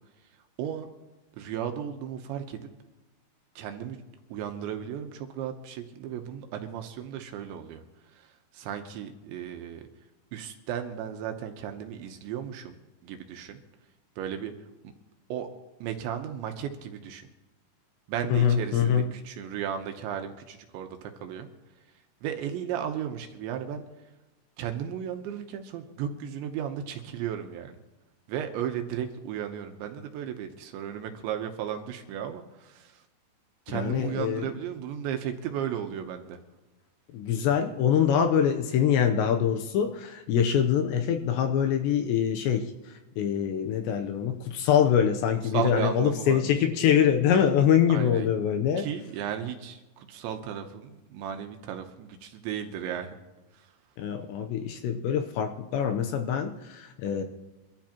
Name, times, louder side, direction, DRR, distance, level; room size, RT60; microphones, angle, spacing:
voice 1, 0.6-0.9 1.4-2.7 3.6-4.0 4.3-9.9 10.3-12.8 13.0-13.6 14.2-14.5 15.3-15.5 15.8-17.3 18.1-21.5 22.2-23.8 24.6-27.8 28.3-33.0 33.7-36.4 45.4-46.9 47.9-48.3 48.8-53.2 53.5-53.7, right 9 dB, 75° right, 6 dB, 2.9 m, -35 dB
voice 2, 18.3-19.0 33.7-34.4 37.1-42.7 43.2-48.9 54.0-57.2, left 8 dB, 75° left, 5 dB, 2.7 m, -24 dB
25.0 x 13.0 x 2.9 m, 1.1 s
omnidirectional pair, 5.7 m